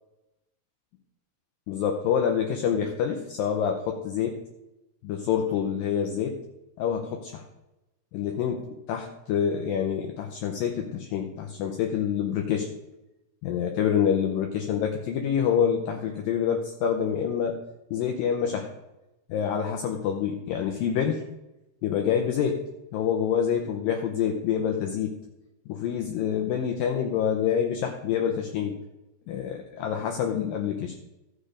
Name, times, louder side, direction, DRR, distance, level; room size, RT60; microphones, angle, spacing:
voice 1, 1.7-4.4 5.0-6.4 6.8-7.4 8.1-12.7 13.4-17.6 17.9-18.7 19.3-21.2 21.8-22.6 22.9-25.1 25.7-28.8 29.3-31.0, left 8 dB, 75° left, 3 dB, 2.2 m, -27 dB
14.0 x 6.6 x 5.0 m, 0.98 s
omnidirectional pair, 4.6 m